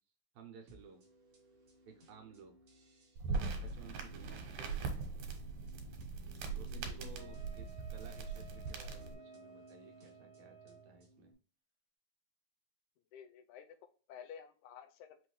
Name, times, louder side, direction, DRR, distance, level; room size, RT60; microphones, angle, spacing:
voice 1, 0.3-1.0 1.9-2.6 3.2-5.0 6.5-11.3, right 5 dB, 70° right, 3 dB, 2.1 m, -56 dB
sound 1, 0.7-11.3, right 1 dB, 50° right, 1.2 m, -61 dB
sound 2, 3.2-9.2, right 4 dB, 90° right, 2.4 m, -41 dB
voice 2, 4.6-4.9 6.8-7.1 13.1-13.8 14.1-15.2, left 8 dB, 90° left, 6 dB, 2.0 m, -53 dB
Wind instrument woodwind instrument, 7.2-11.0, right 4 dB, 60° left, 1.1 m, -57 dB
5.9 x 2.7 x 3.1 m, 0.40 s
omnidirectional pair, 3.4 m